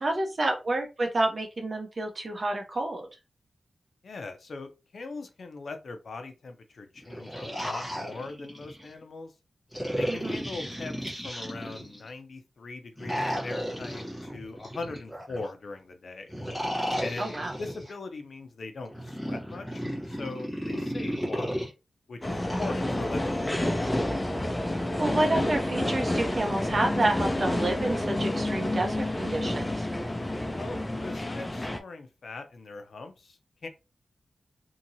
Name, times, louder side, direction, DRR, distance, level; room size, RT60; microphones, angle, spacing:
voice 1, 0.0-3.1 10.1-10.4 17.2-17.5 25.0-29.9, right 2 dB, 40° right, 3 dB, 0.8 m, -29 dB
voice 2, 4.0-9.3 9.9-16.3 17.0-21.7 22.1-23.9 30.6-33.7, left 3 dB, 65° left, 6 dB, 0.6 m, -41 dB
sound 1, 7.0-8.9 9.7-12.1 13.0-15.5 16.3-17.9 18.9-21.7 22.4-24.1, equal, ahead, 1.2 m, -34 dB
sound 2, 22.2-31.8, left 1 dB, 15° left, 0.4 m, -29 dB
2.8 x 2.7 x 2.6 m, 0.27 s
wide cardioid pair, 130°, 0 cm